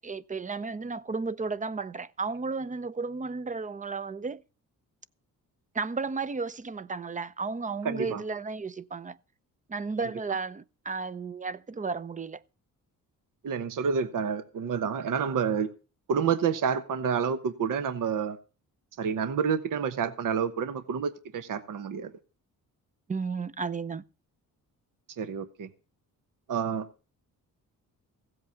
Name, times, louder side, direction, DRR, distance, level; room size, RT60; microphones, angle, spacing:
voice 1, 0.0-4.4 5.7-9.2 9.7-12.4 23.1-24.0, right 4 dB, 20° right, 0.6 m, -33 dB
voice 2, 7.8-8.2 13.4-15.7 16.1-18.4 19.0-22.1 25.2-25.7 26.5-26.9, right 6 dB, 65° right, 1.2 m, -29 dB
16.0 x 7.9 x 5.8 m
cardioid pair, 110°, 35 cm